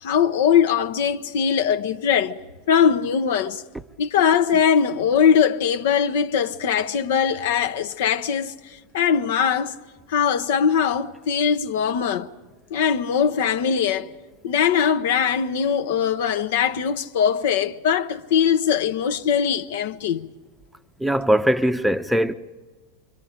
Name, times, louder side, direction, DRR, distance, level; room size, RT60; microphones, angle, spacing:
voice 1, 0.0-3.6 4.0-9.8 10.1-12.3 12.7-14.1 14.4-20.3, left 7 dB, 65° left, 0.7 m, -21 dB
voice 2, 21.0-22.3, right 1 dB, 5° right, 0.7 m, -20 dB
26.0 x 23.5 x 5.1 m
hypercardioid pair, 95°, 0 cm